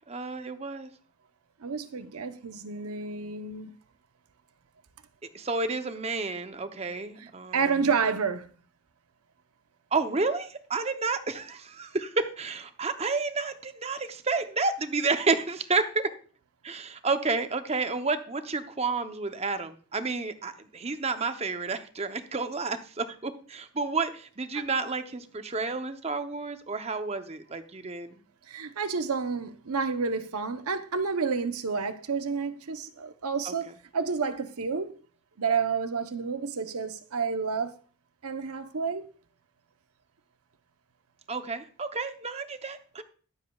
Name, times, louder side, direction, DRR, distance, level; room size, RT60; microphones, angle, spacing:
voice 1, 0.1-0.9 5.3-7.8 9.9-16.1 16.6-28.2 33.5-33.6 41.3-43.0, right 4 dB, 30° right, 0.7 m, -30 dB
voice 2, 1.6-3.7 7.2-8.5 24.5-24.6 28.5-34.9 35.4-37.8 38.2-39.1, right 5 dB, 85° right, 0.8 m, -30 dB
22.0 x 7.4 x 2.3 m
head